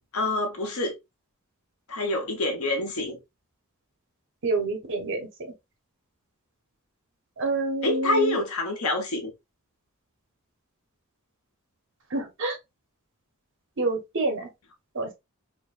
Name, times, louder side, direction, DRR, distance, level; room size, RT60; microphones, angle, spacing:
voice 1, 0.1-0.9 1.9-3.2 7.8-9.3, left 2 dB, 75° left, 1.1 m, -26 dB
voice 2, 4.4-5.3 7.4-8.4 12.1-12.6 13.8-14.5 14.9-15.1, right 2 dB, 60° right, 1.0 m, -27 dB
4.4 x 2.2 x 2.4 m
head